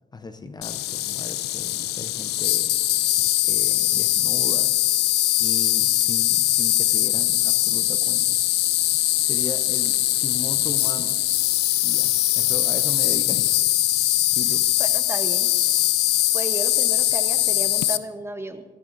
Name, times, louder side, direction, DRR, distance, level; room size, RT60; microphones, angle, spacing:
voice 1, 0.1-2.8 3.4-4.7 5.4-8.3 9.2-11.2 11.8-13.6 14.3-14.7, left 3 dB, 25° left, 9 dB, 0.7 m, -37 dB
Insect, 0.6-18.0, left 15 dB, 80° left, 0.5 m, -21 dB
voice 2, 14.8-15.5 16.3-18.6, right 2 dB, 15° right, 8 dB, 0.9 m, -33 dB
16.0 x 13.0 x 2.6 m, 1.4 s
cardioid pair, 90°, 17 cm